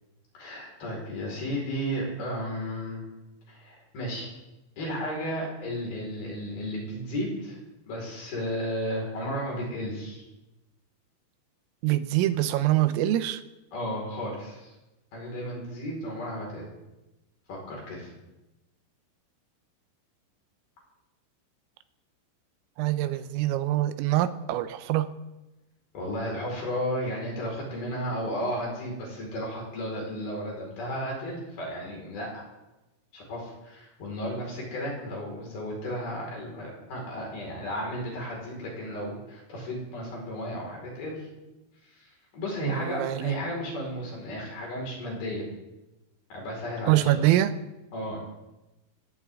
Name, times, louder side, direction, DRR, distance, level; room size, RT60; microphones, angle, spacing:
voice 1, 0.3-3.0 3.5-4.3 4.8-7.6 7.8-10.2 13.7-14.7 15.1-16.7 17.5-18.1 25.9-32.4 33.1-41.3 41.9-45.5 46.3-47.2 47.9-48.2, equal, 50° left, -2 dB, 6.5 m, -34 dB
voice 2, 11.8-13.4 22.8-25.1 42.6-43.4 46.9-47.6, right 14 dB, 85° right, 11 dB, 3.5 m, -24 dB
21.0 x 17.5 x 3.7 m, 1.0 s
omnidirectional pair, 5.9 m